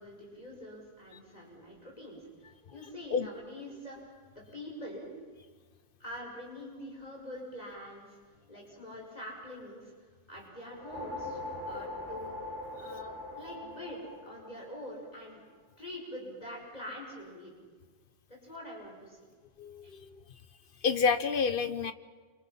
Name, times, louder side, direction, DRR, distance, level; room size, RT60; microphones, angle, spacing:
voice 1, 0.0-5.1 6.0-8.2 8.5-11.4 11.7-15.4 15.8-17.5 18.3-19.2 19.8-19.9, left 1 dB, 35° left, -2 dB, 5.8 m, -45 dB
sound 1, 10.6-15.2, left 1 dB, 10° right, 3.6 m, -41 dB
voice 2, 19.6-20.1 20.8-21.9, left 5 dB, 50° left, 11 dB, 1.2 m, -28 dB
28.5 x 26.5 x 5.8 m, 1.5 s
omnidirectional pair, 1.2 m